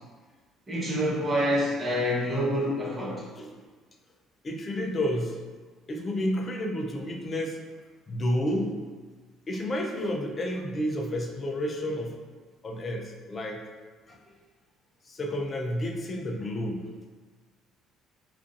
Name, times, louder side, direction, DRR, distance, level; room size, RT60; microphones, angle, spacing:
voice 1, 0.7-3.2, equal, 25° right, -6 dB, 1.0 m, -27 dB
voice 2, 4.4-5.4 5.9-7.6 8.1-8.7 9.5-12.2 12.6-13.6 14.1-14.2 15.1-16.9, equal, 30° left, 1 dB, 0.5 m, -30 dB
5.1 x 2.5 x 2.5 m, 1.4 s
cardioid pair, 130°, 0 cm